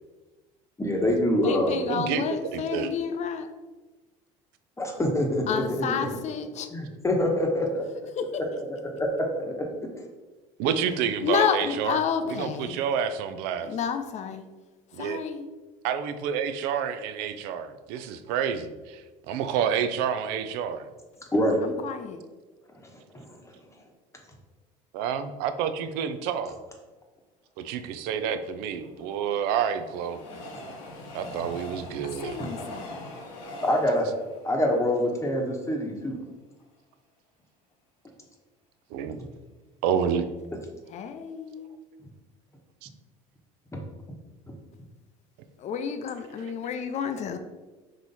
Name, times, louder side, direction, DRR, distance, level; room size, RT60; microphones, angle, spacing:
voice 1, 0.8-1.8 4.8-5.6 6.7-7.8 8.9-9.7 10.6-10.7 21.3-21.6 23.1-23.3 33.6-34.1 34.4-36.2, left 1 dB, 15° left, 1 dB, 1.0 m, -25 dB
voice 2, 1.4-3.5 5.5-6.7 8.1-8.4 11.2-12.8 13.6-14.5 14.9-15.5 21.6-22.2 32.0-33.0 40.9-41.7 45.6-47.4, left 7 dB, 45° left, 8 dB, 0.5 m, -30 dB
voice 3, 1.9-2.9 10.6-12.0 12.3-13.7 14.9-15.2 15.8-20.9 24.9-26.6 27.6-30.2 31.1-32.3 38.9-39.2 39.8-40.3 42.8-42.9, right 8 dB, 70° right, 11 dB, 0.4 m, -29 dB
Train, 28.5-35.8 36.3-36.4 36.6-36.7, left 1 dB, 85° left, 0.9 m, -42 dB
3.8 x 3.1 x 4.0 m, 1.2 s
hypercardioid pair, 80°, 17 cm